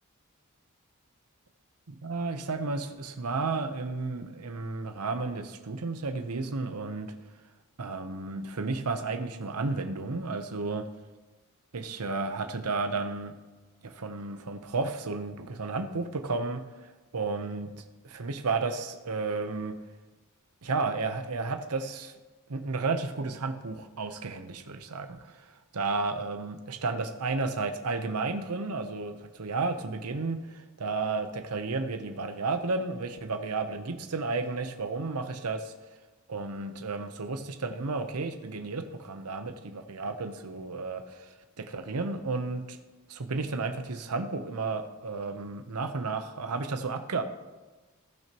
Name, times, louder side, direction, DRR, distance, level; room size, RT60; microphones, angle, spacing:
voice 1, 1.9-7.1 7.8-10.9 11.7-13.3 13.8-17.7 18.0-19.8 20.6-22.1 22.5-35.7 36.3-42.8 43.1-47.2, right 3 dB, 85° right, 8 dB, 0.8 m, -32 dB
17.5 x 6.0 x 3.0 m, 1.2 s
head